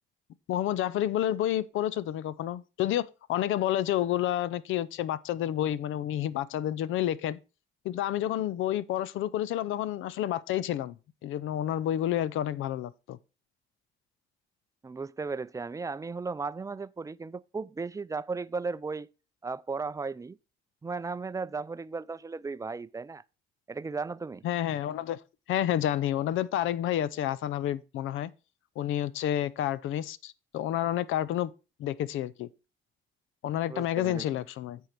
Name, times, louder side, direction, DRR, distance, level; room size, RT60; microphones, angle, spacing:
voice 1, 0.5-7.4 7.8-10.9 11.2-13.2 24.4-25.2 25.5-28.3 28.8-31.5 31.8-32.5 33.4-34.8, left 12 dB, 80° left, 0.6 m, -29 dB
voice 2, 14.8-19.1 19.4-20.4 20.8-23.2 23.7-24.4 33.7-34.3, right 4 dB, 15° right, 0.4 m, -35 dB
8.2 x 4.6 x 5.7 m
cardioid pair, 90°, 20 cm